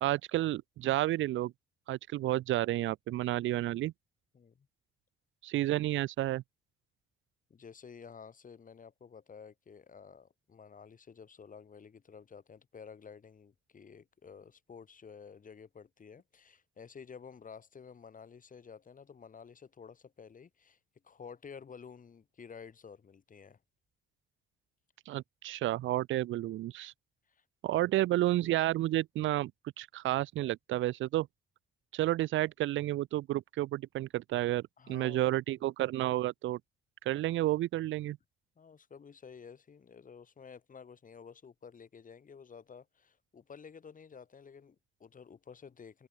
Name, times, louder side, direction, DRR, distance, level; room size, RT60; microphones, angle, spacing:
voice 1, 0.0-1.5 1.9-3.9 5.4-6.4 25.1-26.9 27.6-29.5 29.8-31.3 31.9-36.6 37.0-38.2, right 15 dB, 75° right, 0.7 m, -31 dB
voice 2, 4.3-4.7 7.5-20.8 21.0-23.6 27.3-27.8 34.8-35.4 38.6-46.1, left 6 dB, 40° left, 5.0 m, -52 dB
cardioid pair, 90°, 20 cm